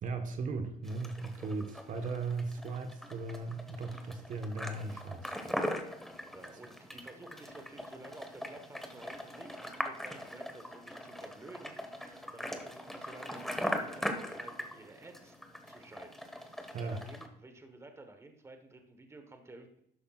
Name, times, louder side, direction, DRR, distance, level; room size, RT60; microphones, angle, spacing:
voice 1, 0.0-5.3 16.7-17.0, right 3 dB, 50° right, 5 dB, 1.2 m, -37 dB
sound 1, 0.8-17.3, equal, ahead, 1.2 m, -41 dB
voice 2, 6.3-15.4 15.7-19.8, right 2 dB, 15° right, 6 dB, 1.2 m, -52 dB
12.0 x 8.2 x 2.4 m, 0.78 s
cardioid pair, 110°, 17 cm